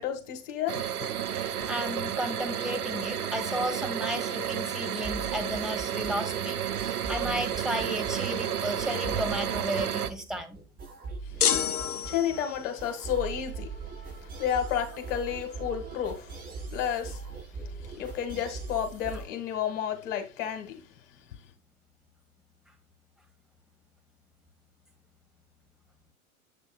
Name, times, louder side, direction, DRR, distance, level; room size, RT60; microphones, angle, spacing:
voice 1, 0.0-1.1 12.1-13.7 14.4-16.4 16.7-17.2 18.0-20.8, left 9 dB, 55° left, 1.9 m, -31 dB
sound 1, 0.7-10.1, right 9 dB, 85° right, 0.8 m, -31 dB
voice 2, 1.2-10.6, equal, ahead, 1.3 m, -34 dB
sound 2, 5.0-19.3, right 4 dB, 20° right, 4.3 m, -41 dB
sound 3, 11.4-12.7, left 9 dB, 85° left, 0.7 m, -28 dB
8.0 x 6.7 x 2.3 m
figure-of-eight pair, 95°, 44 cm